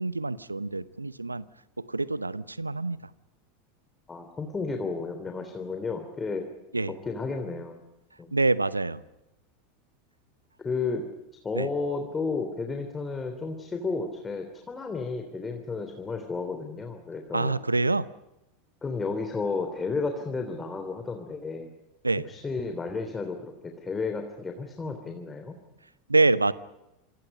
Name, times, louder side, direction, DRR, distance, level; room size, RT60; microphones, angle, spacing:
voice 1, 0.0-1.4 1.8-3.0 6.7-6.9 8.3-9.0 11.5-11.7 17.3-18.1 22.0-22.2 26.1-26.5, right 3 dB, 85° right, 17 dB, 0.9 m, -26 dB
voice 2, 4.1-6.5 6.9-7.8 8.2-8.4 10.6-11.0 11.4-17.6 18.8-21.7 22.3-25.6, left 4 dB, 20° left, 5 dB, 3.3 m, -32 dB
27.5 x 27.0 x 5.6 m, 0.92 s
figure-of-eight pair, 80°, 0 cm